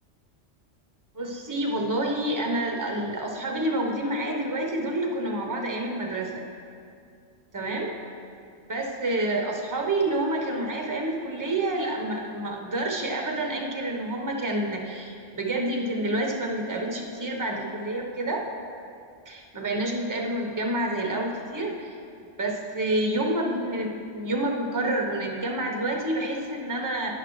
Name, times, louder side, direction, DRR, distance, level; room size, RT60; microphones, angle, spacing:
voice 1, 1.1-6.4 7.5-7.9 8.7-18.4 19.3-22.0 22.4-27.1, right 1 dB, 15° right, 1 dB, 0.9 m, -28 dB
10.5 x 9.9 x 3.2 m, 2.4 s
omnidirectional pair, 1.3 m